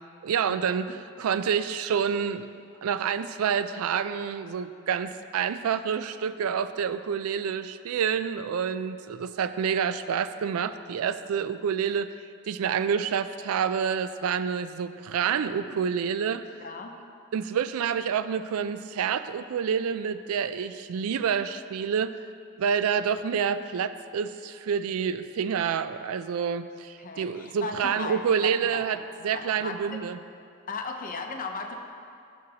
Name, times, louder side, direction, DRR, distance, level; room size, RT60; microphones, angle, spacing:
voice 1, 0.2-0.9 1.2-2.5 2.8-12.1 12.5-16.5 17.3-22.1 22.6-29.0 29.2-30.2, right 7 dB, 85° right, 12 dB, 0.3 m, -28 dB
voice 2, 16.6-17.0 27.0-28.8 29.3-30.0 30.7-31.8, left 4 dB, 40° left, 4 dB, 0.6 m, -36 dB
12.5 x 6.5 x 2.8 m, 2.4 s
head